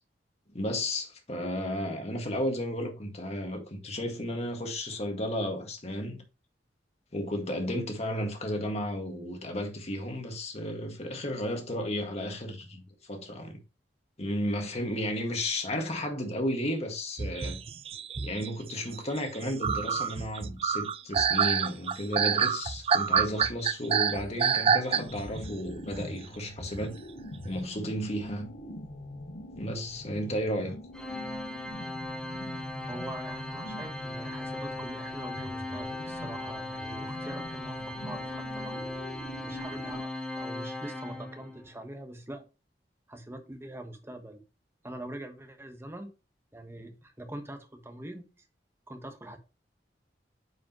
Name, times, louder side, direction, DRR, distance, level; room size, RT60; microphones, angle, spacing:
voice 1, 0.5-6.2 7.1-13.6 14.2-17.6 18.2-27.0 27.4-28.5 29.6-30.8, left 1 dB, 35° left, 1.8 m, -33 dB
sound 1, 17.2-25.4 25.7-26.0 26.7-26.8 27.2-27.4, right 7 dB, 35° right, 0.4 m, -27 dB
sound 2, 24.9-40.0, left 1 dB, 85° left, 1.5 m, -43 dB
Organ, 30.9-41.7, left 1 dB, 5° left, 1.0 m, -38 dB
voice 2, 32.9-38.9 39.4-40.1 40.4-42.4 43.1-44.4 44.8-46.1 46.5-48.5 48.9-49.4, right 1 dB, 15° right, 1.2 m, -43 dB
9.5 x 5.1 x 3.0 m
head